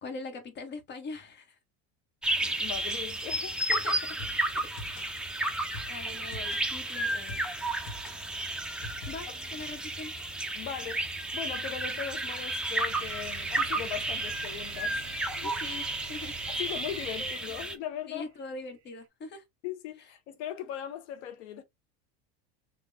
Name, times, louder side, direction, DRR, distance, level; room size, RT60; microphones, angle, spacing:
voice 1, 0.0-1.6 3.7-4.0 4.8-5.1 5.9-7.4 9.1-10.1 15.6-16.4 17.2-17.5 18.1-19.4, left 3 dB, 30° left, 1.0 m, -42 dB
sound 1, 2.2-17.8, right 1 dB, 5° right, 0.4 m, -32 dB
voice 2, 2.4-3.6 10.5-11.1 11.3-15.0 15.3-15.6 16.5-18.3 19.6-21.6, left 10 dB, 80° left, 0.7 m, -39 dB
sound 2, 4.2-10.2, left 2 dB, 60° left, 1.2 m, -45 dB
sound 3, 9.6-9.8 11.9-18.9, right 9 dB, 50° right, 0.8 m, -45 dB
3.6 x 2.2 x 3.4 m
supercardioid pair, 130°, 33 cm